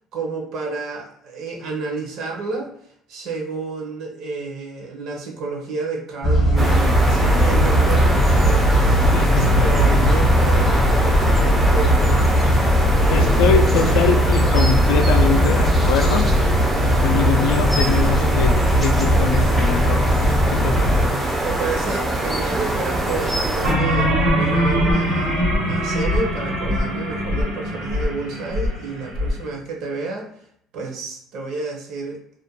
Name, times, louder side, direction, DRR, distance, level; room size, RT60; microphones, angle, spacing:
voice 1, 0.1-2.7 3.1-8.9 9.1-13.9 21.4-30.3 30.7-32.2, right 3 dB, 55° right, 2 dB, 0.6 m, -30 dB
sound 1, 6.2-21.1, equal, 40° left, 0.7 m, -18 dB
sound 2, 6.6-23.7, right 1 dB, 10° right, 0.4 m, -23 dB
voice 2, 9.1-9.6 13.1-16.3 17.0-21.0, left 6 dB, 85° left, 6 dB, 0.3 m, -23 dB
sound 3, 23.6-29.3, equal, 80° right, 0.9 m, -22 dB
2.4 x 2.1 x 2.7 m, 0.66 s
cardioid pair, 155°, 0 cm